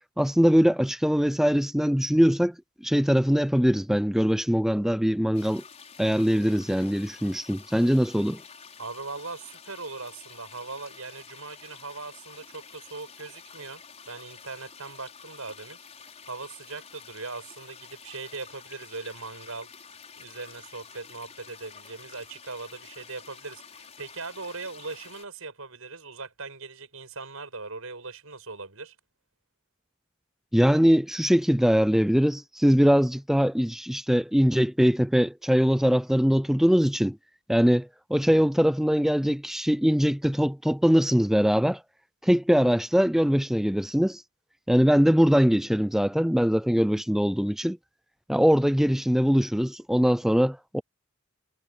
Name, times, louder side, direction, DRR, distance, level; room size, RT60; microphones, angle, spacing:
voice 1, 0.2-2.6 2.8-5.6 6.0-8.4 30.5-37.2 37.5-41.8 42.2-44.2 44.7-47.8 48.3-50.8, equal, ahead, 0.5 m, -22 dB
sound 1, 5.3-25.3, left 6 dB, 30° left, 5.4 m, -49 dB
voice 2, 8.8-15.8 16.3-19.7 20.2-28.9, right 3 dB, 85° right, 6.2 m, -40 dB
head